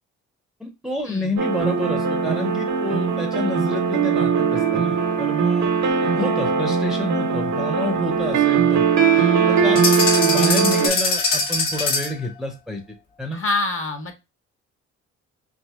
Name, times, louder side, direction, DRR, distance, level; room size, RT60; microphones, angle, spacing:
voice 1, 0.6-5.7 6.1-8.9 9.5-12.8 13.2-13.4, left 1 dB, ahead, 4 dB, 0.6 m, -29 dB
sound 1, 1.4-10.9, right 6 dB, 55° right, 0.6 m, -20 dB
sound 2, 9.8-12.2, left 3 dB, 65° left, 1.1 m, -22 dB
voice 2, 13.3-14.2, left 2 dB, 35° left, 6 dB, 0.8 m, -26 dB
2.8 x 2.7 x 2.2 m, 0.25 s
hypercardioid pair, 45°, 35 cm